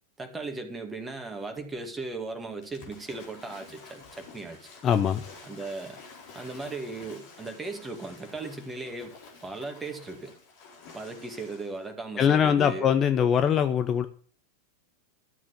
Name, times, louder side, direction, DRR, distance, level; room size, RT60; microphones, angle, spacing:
voice 1, 0.2-4.7 5.4-6.0 6.3-9.1 9.4-10.4 10.9-12.9, right 3 dB, 15° right, 2.3 m, -37 dB
Waves surf / Splash splatter, 2.6-11.9, left 4 dB, 45° left, 4.0 m, -50 dB
voice 2, 4.8-5.2 12.2-14.1, left 8 dB, 25° left, 0.8 m, -22 dB
13.0 x 7.3 x 7.2 m
figure-of-eight pair, 90°, 0 cm